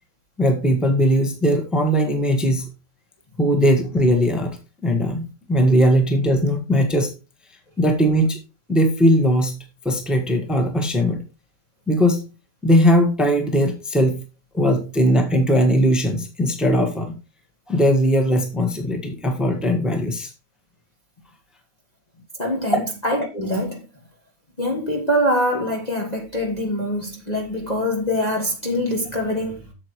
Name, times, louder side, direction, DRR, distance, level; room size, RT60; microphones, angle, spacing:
voice 1, 0.4-2.7 3.4-4.6 4.8-5.2 5.5-7.1 7.8-8.4 8.7-11.2 11.9-12.2 12.6-14.2 14.5-17.1 17.7-20.3 22.7-22.8, equal, ahead, 1.3 m, -19 dB
voice 2, 22.4-23.8 24.6-29.6, equal, 25° left, 1.4 m, -24 dB
8.8 x 7.4 x 3.1 m
omnidirectional pair, 1.8 m